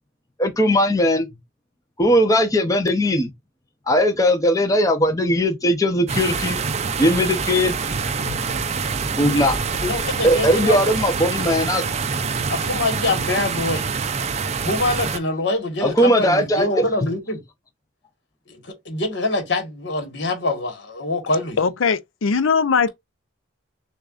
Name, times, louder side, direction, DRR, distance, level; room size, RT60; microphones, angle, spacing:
voice 1, 0.4-1.3 2.0-3.3 3.9-6.6 7.0-7.8 8.2-8.4 9.2-9.6 10.2-11.8 15.8-16.9, equal, 15° left, 0.6 m, -19 dB
sound 1, 6.1-15.2, right 5 dB, 30° right, 0.4 m, -25 dB
voice 2, 9.8-11.0 12.5-13.8 14.6-17.4 18.5-21.6, left 2 dB, 55° left, 1.5 m, -25 dB
voice 3, 21.6-22.9, left 5 dB, 75° left, 0.5 m, -20 dB
6.5 x 2.4 x 2.4 m
head